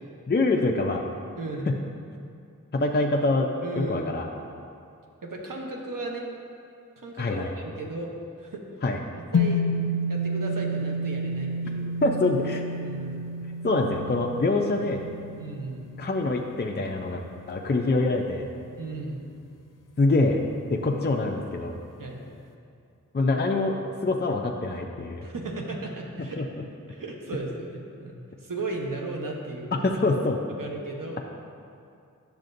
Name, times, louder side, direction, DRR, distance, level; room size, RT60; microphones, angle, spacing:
voice 1, 0.3-1.0 1.7-1.8 2.7-4.3 7.2-7.5 8.8-9.0 12.0-12.6 13.6-15.1 16.0-18.5 20.0-20.4 20.7-21.8 23.1-25.3 26.2-26.4 29.7-30.4, left 2 dB, 35° left, 1 dB, 0.5 m, -25 dB
voice 2, 1.4-1.7 3.6-4.2 5.2-6.3 7.0-8.1 8.4-8.6 9.3-9.6 10.1-12.0 12.8-13.3 15.4-15.9 18.8-19.2 22.0-22.2 25.2-26.4 26.9-29.7 30.6-31.2, right 2 dB, 85° right, 0 dB, 0.9 m, -35 dB
sound 1, 9.3-17.8, left 1 dB, 75° left, 0.6 m, -30 dB
10.5 x 6.5 x 2.6 m, 2.5 s
wide cardioid pair, 55°, 32 cm